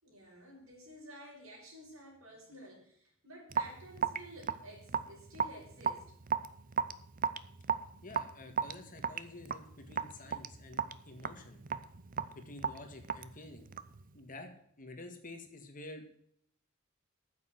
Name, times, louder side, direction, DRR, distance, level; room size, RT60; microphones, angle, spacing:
voice 1, 0.0-6.1, right 1 dB, 85° right, -1 dB, 5.5 m, -52 dB
Raindrop / Drip, 3.5-14.0, right 7 dB, 40° right, 0.6 m, -36 dB
voice 2, 8.0-11.6 12.3-13.7 14.1-14.5 14.8-16.0, left 2 dB, 40° left, 6 dB, 1.8 m, -49 dB
9.3 x 7.9 x 7.8 m, 0.68 s
head